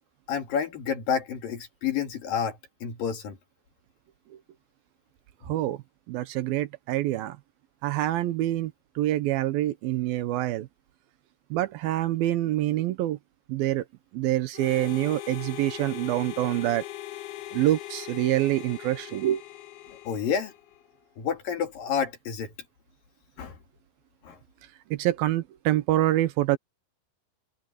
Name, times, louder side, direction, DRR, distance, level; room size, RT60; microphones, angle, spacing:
voice 1, 0.3-3.4 20.0-20.5 21.2-22.5 23.4-23.6 24.2-24.4, left 7 dB, 65° left, 4.1 m, -29 dB
voice 2, 5.4-5.8 6.1-7.4 7.8-10.7 11.5-13.2 13.5-13.9 14.1-16.9 17.5-19.4 24.9-26.6, right 14 dB, 80° right, 2.6 m, -26 dB
Harmonica, 14.5-20.9, left 14 dB, 85° left, 3.2 m, -40 dB
omnidirectional pair, 4.3 m